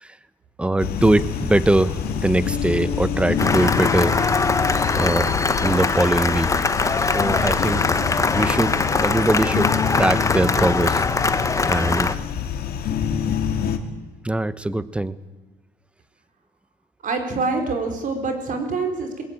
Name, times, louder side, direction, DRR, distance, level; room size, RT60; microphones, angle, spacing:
voice 1, 0.6-4.3 4.9-5.3 5.6-6.6 7.1-8.0 8.4-12.2 14.2-15.2, right 1 dB, 5° right, 16 dB, 0.9 m, -22 dB
sound 1, 0.8-13.8, left 7 dB, 65° left, 2.2 m, -26 dB
sound 2, 1.0-8.6, left 4 dB, 40° left, 5.2 m, -39 dB
Cheering / Applause, 3.4-12.1, left 4 dB, 20° left, 1.0 m, -22 dB
voice 2, 17.0-19.2, right 3 dB, 50° right, 5 dB, 4.2 m, -25 dB
21.0 x 17.0 x 8.8 m, 1.2 s
cardioid pair, 110°, 17 cm